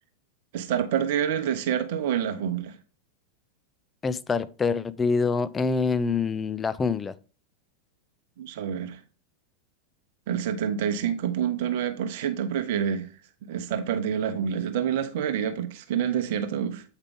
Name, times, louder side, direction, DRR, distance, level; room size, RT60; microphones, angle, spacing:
voice 1, 0.5-2.8 8.4-9.0 10.3-13.1 13.4-16.8, right 8 dB, 50° right, 0.9 m, -27 dB
voice 2, 4.0-7.1, left 4 dB, 15° left, 0.5 m, -25 dB
8.2 x 5.0 x 3.5 m
figure-of-eight pair, 90°, 0 cm